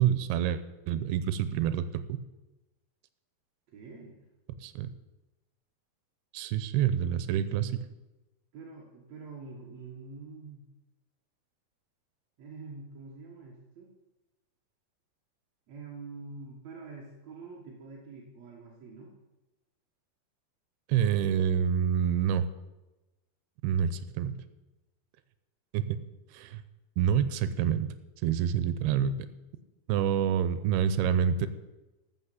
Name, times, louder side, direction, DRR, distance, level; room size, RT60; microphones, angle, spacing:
voice 1, 0.0-2.2 4.6-4.9 6.3-7.9 20.9-22.5 23.6-24.4 25.7-25.9 26.3-26.6 27.0-27.9 28.2-29.2 29.9-31.5, right 9 dB, 90° right, 12 dB, 2.7 m, -27 dB
voice 2, 3.7-4.3 8.5-10.6 12.4-13.9 15.7-19.2, right 4 dB, 55° right, -2 dB, 2.2 m, -46 dB
13.5 x 6.2 x 7.7 m, 1.0 s
omnidirectional pair, 4.5 m